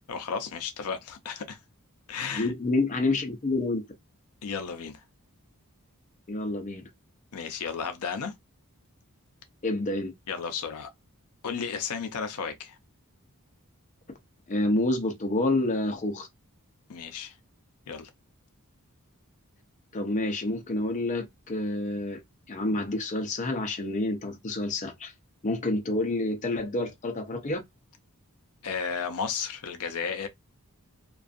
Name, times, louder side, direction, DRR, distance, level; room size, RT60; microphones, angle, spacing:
voice 1, 0.1-1.6 2.1-2.5 4.4-5.0 7.3-8.3 10.3-10.9 11.4-12.8 16.9-17.4 17.9-18.1 28.6-30.3, left 6 dB, 80° left, 0.5 m, -33 dB
voice 2, 2.3-3.8 6.3-6.8 9.6-10.1 14.5-16.3 19.9-22.2 22.5-25.1 25.4-27.6, left 2 dB, 35° left, 0.6 m, -28 dB
2.5 x 2.3 x 2.4 m
head